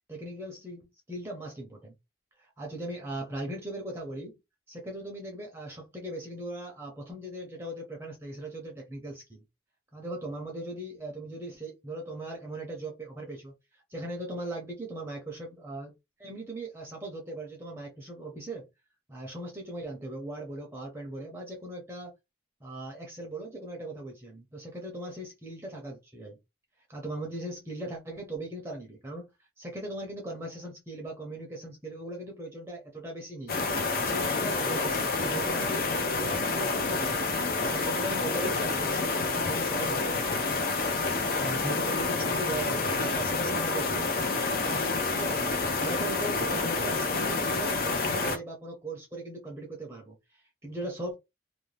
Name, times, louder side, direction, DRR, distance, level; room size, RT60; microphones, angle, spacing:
voice 1, 0.1-1.9 2.4-4.4 4.7-9.4 9.9-15.9 16.2-18.7 19.1-22.1 22.6-26.4 26.9-29.3 29.6-33.6 33.9-35.9 36.2-37.4 37.7-41.1 41.3-44.1 44.5-51.1, right 1 dB, 15° right, 0.6 m, -39 dB
sound 1, 33.5-48.4, left 3 dB, 50° left, 0.5 m, -28 dB
2.6 x 2.1 x 3.2 m
head